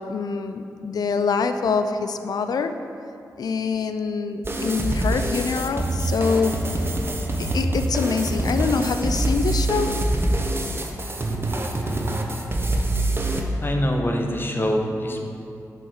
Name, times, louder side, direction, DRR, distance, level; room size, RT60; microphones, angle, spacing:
voice 1, 0.0-2.7 3.4-6.5 7.4-9.9, left 5 dB, 70° left, 8 dB, 0.4 m, -25 dB
sound 1, 4.4-13.4, right 1 dB, 35° right, 1.0 m, -25 dB
voice 2, 13.3-15.2, equal, 30° left, 2 dB, 1.1 m, -25 dB
8.1 x 5.7 x 4.4 m, 2.7 s
cardioid pair, 45°, 7 cm